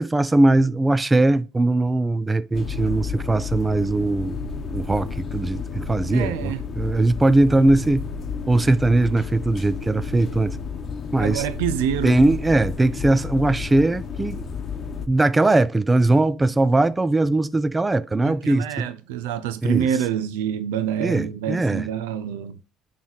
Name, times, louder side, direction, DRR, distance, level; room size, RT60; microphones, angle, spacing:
voice 1, 0.0-4.4 4.7-8.0 8.5-10.6 11.1-11.4 12.0-14.5 15.1-18.9 19.6-19.9 21.0-21.9, right 2 dB, 20° right, 0.4 m, -20 dB
sound 1, 2.5-15.1, left 5 dB, 45° left, 0.9 m, -32 dB
voice 2, 6.1-6.6 11.2-12.2 18.2-22.6, right 9 dB, 85° right, 0.5 m, -26 dB
9.2 x 3.2 x 4.0 m
hypercardioid pair, 70°, 0 cm